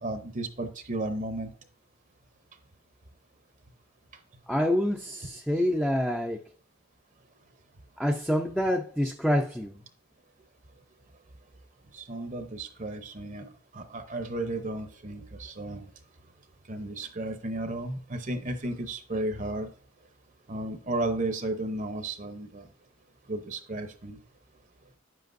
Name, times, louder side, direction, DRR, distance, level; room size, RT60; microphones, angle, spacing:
voice 1, 0.0-1.5 11.9-15.9 16.7-19.7 20.5-22.7 23.3-24.2, right 2 dB, 35° right, 7 dB, 0.7 m, -34 dB
voice 2, 4.5-6.4 8.0-9.7, equal, ahead, 2 dB, 0.5 m, -27 dB
10.0 x 7.7 x 2.6 m, 0.42 s
head